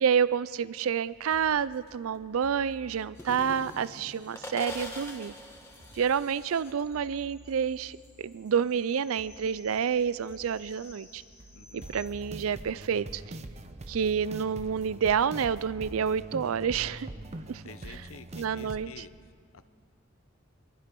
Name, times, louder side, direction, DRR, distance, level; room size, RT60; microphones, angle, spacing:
voice 1, 0.0-5.3 5.9-11.2 11.7-13.4 13.9-17.1 17.5-17.6 18.4-19.0, right 7 dB, 85° right, 18 dB, 0.4 m, -29 dB
sound 1, 1.1-13.1 13.6-16.8, equal, 55° right, 2.2 m, -57 dB
sound 2, 3.2-8.3 8.7-12.1, left 1 dB, 15° left, 1.8 m, -46 dB
voice 2, 11.5-11.8 17.6-19.1 19.5-19.6, left 5 dB, 80° left, 12 dB, 0.8 m, -48 dB
sound 3, 11.8-18.8, right 1 dB, 35° right, 0.8 m, -43 dB
25.5 x 22.0 x 5.3 m, 2.1 s
head